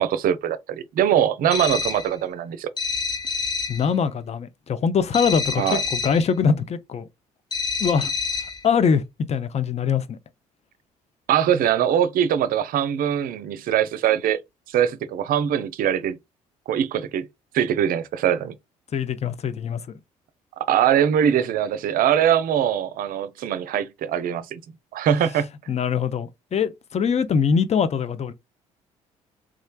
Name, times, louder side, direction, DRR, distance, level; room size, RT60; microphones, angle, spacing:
voice 1, 0.0-2.7 5.6-5.8 11.3-14.4 14.7-16.2 16.7-17.3 17.5-18.5 20.6-24.6 24.9-25.5, right 9 dB, 60° right, 0.5 m, -22 dB
sound 1, 1.5-2.1 2.8-3.9 5.1-6.3 7.5-8.6, left 4 dB, 25° left, 0.9 m, -27 dB
voice 2, 3.7-7.1 7.8-8.1 8.6-9.0 9.3-10.2 18.9-19.8 25.7-28.3, left 6 dB, 40° left, 0.6 m, -23 dB
3.6 x 3.2 x 2.2 m
hypercardioid pair, 55°, 17 cm